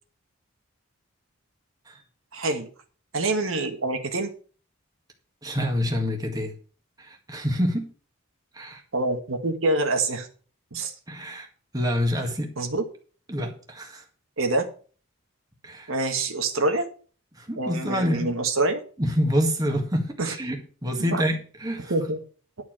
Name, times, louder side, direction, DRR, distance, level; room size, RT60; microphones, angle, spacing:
voice 1, 2.3-2.7 3.1-4.3 8.9-10.3 10.7-10.9 12.6-12.9 14.4-14.7 15.9-16.9 17.6-18.8 20.2-20.3 21.0-21.2 21.9-22.2, right 2 dB, 75° right, 5 dB, 1.7 m, -26 dB
voice 2, 5.4-6.5 7.0-7.9 8.5-8.8 11.1-11.5 11.7-12.5 13.3-14.0 15.6-15.9 17.3-18.3 19.0-21.9, equal, 20° right, 2 dB, 1.9 m, -27 dB
11.0 x 4.7 x 7.7 m, 0.40 s
head